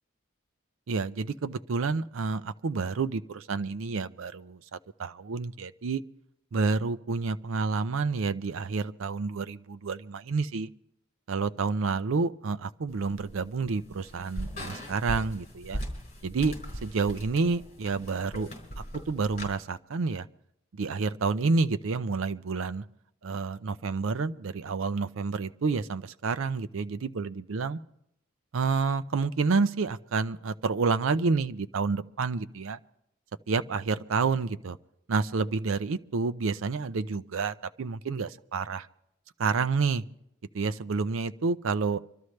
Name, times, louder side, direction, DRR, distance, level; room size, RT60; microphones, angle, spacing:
voice 1, 0.9-6.0 6.5-10.7 11.3-15.8 16.2-18.5 18.9-20.3 20.7-22.8 23.2-27.8 28.5-32.8 33.5-34.8 35.1-38.9 39.4-40.0 40.5-42.0, right 4 dB, 70° right, 12 dB, 0.5 m, -29 dB
sound 1, 12.9-19.5, equal, 35° left, 4.2 m, -40 dB
25.5 x 13.0 x 3.2 m, 0.77 s
head